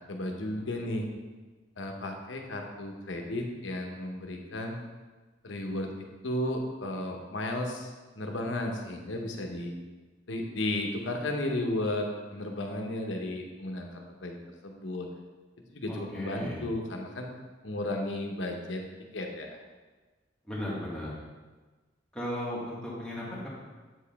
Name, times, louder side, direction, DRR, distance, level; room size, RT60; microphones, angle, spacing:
voice 1, 0.1-1.1 1.8-4.8 5.4-5.9 6.2-9.7 10.3-15.1 15.7-17.3 17.6-18.8 19.1-19.6, left 1 dB, 90° left, 2 dB, 0.9 m, -34 dB
voice 2, 15.9-16.6 20.5-21.1 22.1-23.5, equal, 5° left, -7 dB, 1.7 m, -36 dB
7.8 x 5.0 x 3.5 m, 1.3 s
head